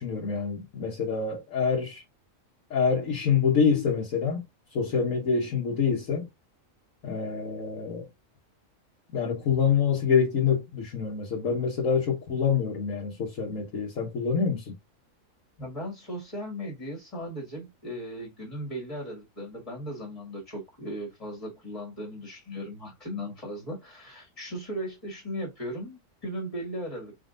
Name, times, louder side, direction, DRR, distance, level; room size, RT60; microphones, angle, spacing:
voice 1, 0.0-2.0 2.7-4.4 4.7-6.3 7.0-8.1 9.1-14.7, left 6 dB, 75° left, 1.4 m, -26 dB
voice 2, 15.6-27.2, equal, 25° left, 1.6 m, -37 dB
4.3 x 3.6 x 2.6 m
omnidirectional pair, 1.4 m